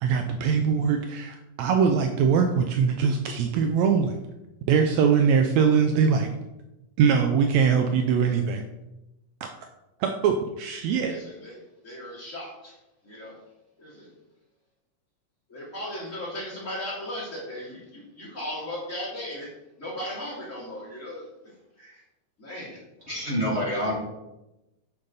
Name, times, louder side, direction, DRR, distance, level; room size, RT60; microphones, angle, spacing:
voice 1, 0.0-4.2 4.7-6.3 7.0-8.6 10.0-11.1, right 6 dB, 80° right, 5 dB, 1.6 m, -22 dB
voice 2, 10.9-11.6 11.8-12.7 13.0-13.3 13.8-14.1 15.5-19.5 19.8-21.2 21.8-21.9 22.4-22.8, left 1 dB, 25° left, -7 dB, 3.1 m, -36 dB
voice 3, 23.0-24.0, equal, 25° right, -5 dB, 1.6 m, -27 dB
9.0 x 6.9 x 4.0 m, 0.95 s
omnidirectional pair, 3.8 m